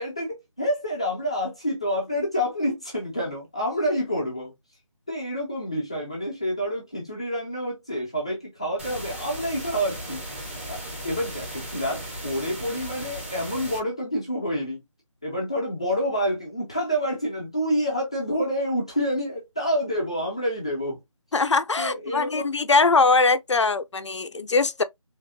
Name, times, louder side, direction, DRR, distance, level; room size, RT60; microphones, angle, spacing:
voice 1, 0.0-4.5 5.1-10.2 10.7-14.8 15.2-21.0 21.8-22.5, equal, 10° left, 0.6 m, -28 dB
sound 1, 8.8-13.8, right 1 dB, 20° right, 1.1 m, -36 dB
voice 2, 21.3-24.8, left 4 dB, 60° left, 0.5 m, -21 dB
3.7 x 3.2 x 2.7 m
figure-of-eight pair, 175°, 17 cm